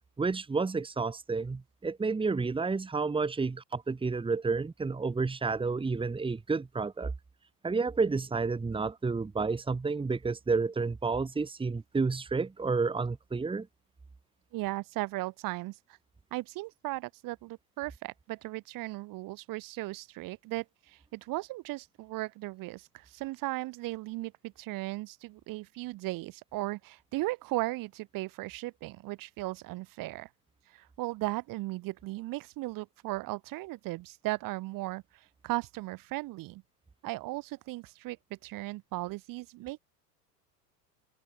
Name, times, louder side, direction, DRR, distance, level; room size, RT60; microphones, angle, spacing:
voice 1, 0.2-7.1 7.6-13.7, right 4 dB, 10° right, 2.4 m, -30 dB
voice 2, 14.5-15.8 16.3-30.3 30.7-36.6 37.0-39.8, right 20 dB, 45° right, 2.6 m, -37 dB
open air
hypercardioid pair, 100°, 48 cm